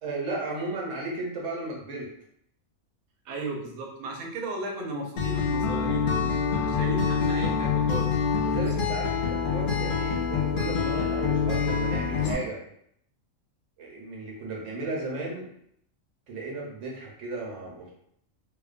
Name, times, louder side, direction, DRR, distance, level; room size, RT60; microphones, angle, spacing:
voice 1, 0.0-2.1 8.4-12.6 13.8-15.5 16.3-17.9, right 2 dB, 65° right, -2 dB, 1.1 m, -34 dB
voice 2, 3.3-8.2, right 2 dB, 85° right, 1 dB, 1.0 m, -35 dB
Acoustic guitar, 5.2-12.3, left 5 dB, 70° left, 0.5 m, -26 dB
2.7 x 2.2 x 2.4 m, 0.70 s
omnidirectional pair, 1.5 m